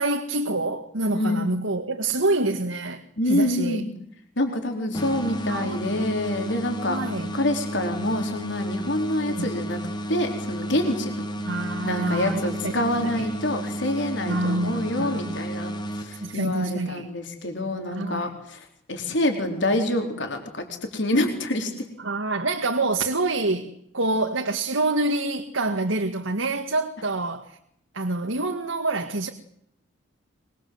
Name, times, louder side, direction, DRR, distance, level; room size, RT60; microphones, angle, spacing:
voice 1, 0.0-3.8 5.5-5.8 6.9-7.3 9.0-9.5 11.4-12.7 13.0-13.3 14.3-15.3 16.2-17.1 18.0-18.3 22.0-27.6 27.9-29.3, right 2 dB, 75° right, 4 dB, 2.0 m, -27 dB
voice 2, 1.1-1.5 3.2-3.9 4.4-7.0 7.3-9.8 10.1-11.1 11.8-20.6 20.9-21.7, left 1 dB, 60° left, 4 dB, 4.5 m, -26 dB
sound 1, 4.9-16.7, right 1 dB, 20° left, 2.2 m, -32 dB
24.5 x 23.0 x 8.0 m, 0.71 s
head